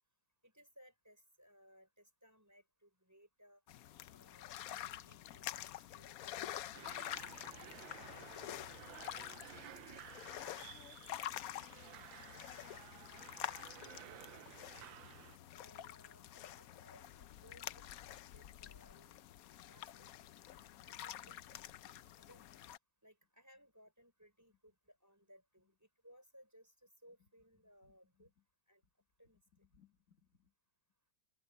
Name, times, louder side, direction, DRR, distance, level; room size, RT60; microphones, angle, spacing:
voice 1, 0.4-3.6 4.1-6.5 15.5-17.8 18.3-19.3 19.6-20.2 20.5-21.2 22.2-22.5 23.0-28.3 28.7-28.8 29.2-29.4, equal, 10° right, 5.8 m, -65 dB
sound 1, 3.7-22.8, left 12 dB, 85° left, 0.8 m, -48 dB
sound 2, 6.7-15.4, right 15 dB, 75° right, 1.2 m, -55 dB
voice 2, 8.7-14.1 24.5-24.6 25.6-25.7 27.2-27.3 27.6-28.5 28.8-28.9 29.3-30.5, left 6 dB, 40° left, 2.1 m, -67 dB
omnidirectional pair, 2.2 m